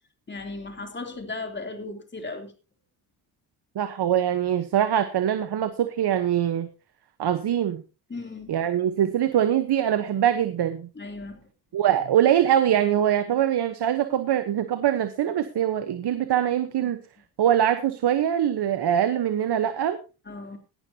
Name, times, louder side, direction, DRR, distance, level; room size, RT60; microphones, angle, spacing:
voice 1, 0.3-2.5 8.1-8.6 9.0-9.1 10.9-11.5 16.8-16.9 20.2-20.6, left 3 dB, 25° left, 3.2 m, -36 dB
voice 2, 3.7-6.7 7.2-7.8 8.5-10.9 11.7-17.0 17.4-20.0, right 10 dB, 55° right, 1.2 m, -23 dB
17.5 x 11.5 x 2.9 m
cardioid pair, 95°, 46 cm